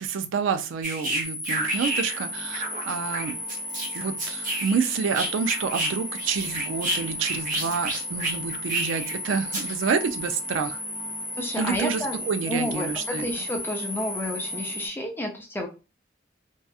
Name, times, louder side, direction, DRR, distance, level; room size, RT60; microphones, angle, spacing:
voice 1, 0.0-3.4 3.9-10.8 11.5-13.3, right 5 dB, 75° right, 9 dB, 0.3 m, -28 dB
sound 1, 0.8-2.3 2.5-5.9 6.2-9.1 9.5-9.7, right 1 dB, 45° right, 0.8 m, -30 dB
sound 2, 1.2-14.9, left 1 dB, 10° right, 0.9 m, -34 dB
sound 3, 1.5-14.9, left 2 dB, 90° left, 1.0 m, -47 dB
voice 2, 11.4-12.2 12.5-15.7, left 1 dB, 10° left, 2 dB, 0.5 m, -30 dB
2.7 x 2.3 x 2.3 m, 0.31 s
head